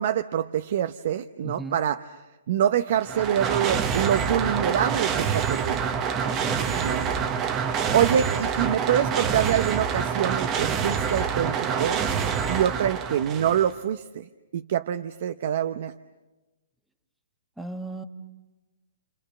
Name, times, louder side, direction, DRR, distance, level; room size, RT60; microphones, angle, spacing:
voice 1, 0.0-2.2 2.5-5.8 6.8-7.1 7.9-12.0 12.5-15.9, right 10 dB, 55° right, 10 dB, 0.8 m, -25 dB
voice 2, 1.4-1.8 6.2-6.8 17.6-18.0, right 2 dB, ahead, 7 dB, 1.4 m, -36 dB
sound 1, 2.9-13.7, right 7 dB, 20° right, 1.2 m, -26 dB
29.5 x 28.5 x 6.7 m, 1.1 s
hypercardioid pair, 155°, 0 cm